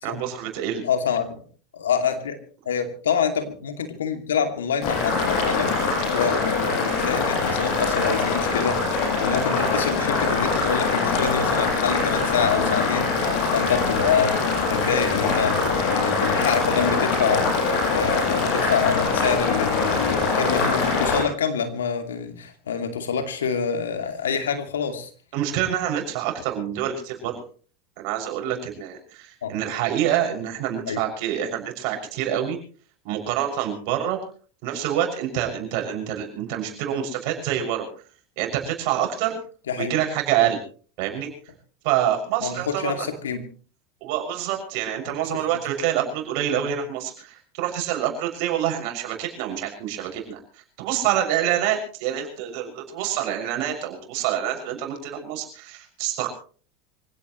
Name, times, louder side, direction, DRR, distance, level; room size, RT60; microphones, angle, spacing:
voice 1, 0.0-0.8 25.3-27.4 28.0-32.6 33.0-34.2 34.6-37.9 38.4-39.3 39.8-40.6 41.0-41.3 41.8-43.1 44.0-50.4 50.8-56.3, right 10 dB, 65° right, 3 dB, 6.4 m, -26 dB
voice 2, 0.8-1.4 1.7-2.4 2.7-5.8 6.1-25.1 29.4-29.5 30.9-31.0 39.7-40.0 42.4-43.4 45.1-45.2, left 6 dB, 85° left, 7 dB, 2.5 m, -26 dB
Boiling, 4.8-21.2, left 4 dB, 60° left, 8.0 m, -23 dB
25.5 x 17.0 x 3.1 m, 0.41 s
hypercardioid pair, 85°, 0 cm